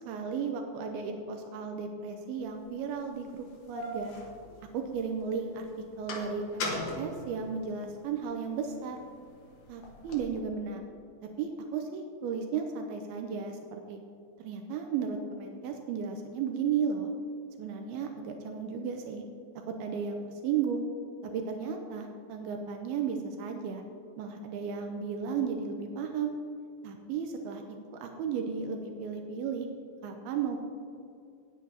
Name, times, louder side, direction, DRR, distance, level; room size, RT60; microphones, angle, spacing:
voice 1, 0.1-4.1 4.7-5.7 6.0-9.0 9.7-10.8 11.4-14.0 14.4-17.1 17.6-19.2 19.7-20.8 21.2-23.8 24.2-26.3 26.8-27.6 27.9-29.7 30.0-30.6, right 6 dB, 85° right, 4 dB, 2.6 m, -34 dB
sound 1, 2.6-2.7 3.3-5.2 5.5-8.2 8.6-10.4, left 2 dB, 60° left, 2.5 m, -39 dB
18.0 x 9.3 x 2.8 m, 2.4 s
omnidirectional pair, 4.5 m